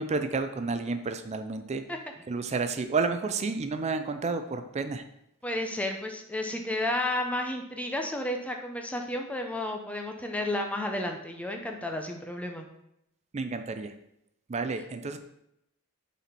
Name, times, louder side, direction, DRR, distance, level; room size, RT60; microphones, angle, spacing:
voice 1, 0.0-1.9 2.3-5.1 13.3-13.9 14.5-15.2, right 4 dB, 30° right, 9 dB, 0.4 m, -30 dB
voice 2, 5.4-12.6, left 1 dB, 5° left, 3 dB, 0.7 m, -32 dB
7.0 x 4.3 x 4.3 m, 0.79 s
head